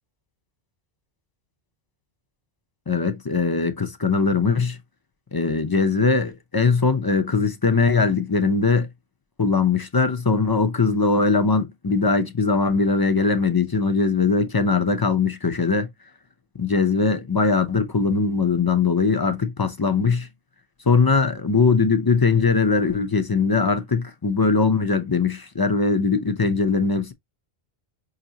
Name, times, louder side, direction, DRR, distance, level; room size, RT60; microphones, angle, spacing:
voice 1, 2.9-4.8 5.3-8.9 9.4-15.9 16.6-20.3 20.9-27.1, left 4 dB, 30° left, 0.5 m, -21 dB
5.7 x 2.5 x 2.7 m
omnidirectional pair, 1.1 m